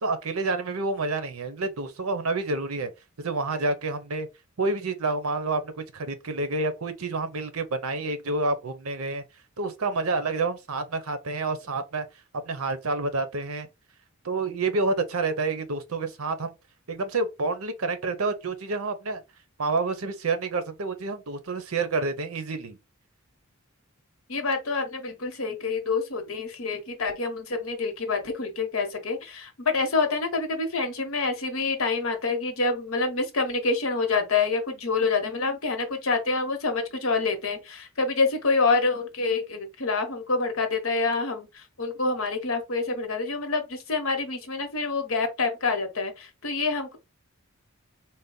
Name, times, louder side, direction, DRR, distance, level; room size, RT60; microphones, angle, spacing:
voice 1, 0.0-2.9 3.2-4.3 4.6-9.2 9.6-12.1 12.3-13.7 14.2-16.5 16.9-19.2 19.6-22.8, right 3 dB, 85° right, 0.8 m, -28 dB
voice 2, 24.3-47.0, left 4 dB, 70° left, 1.0 m, -27 dB
4.0 x 2.2 x 3.8 m
head